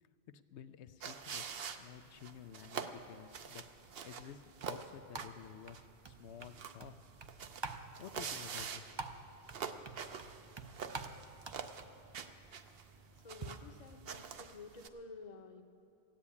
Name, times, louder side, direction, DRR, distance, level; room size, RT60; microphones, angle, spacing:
voice 1, 0.3-1.4 1.8-3.6 4.0-5.8 6.0-6.9 8.0-9.2, left 9 dB, 90° left, 12 dB, 0.9 m, -52 dB
sound 1, 1.0-14.9, right 6 dB, 65° right, 0.9 m, -46 dB
sound 2, 3.8-13.5, right 3 dB, 30° right, 0.5 m, -50 dB
voice 2, 13.2-15.6, left 4 dB, 45° left, 5 dB, 0.9 m, -51 dB
14.5 x 10.5 x 8.5 m, 2.6 s
omnidirectional pair, 1.1 m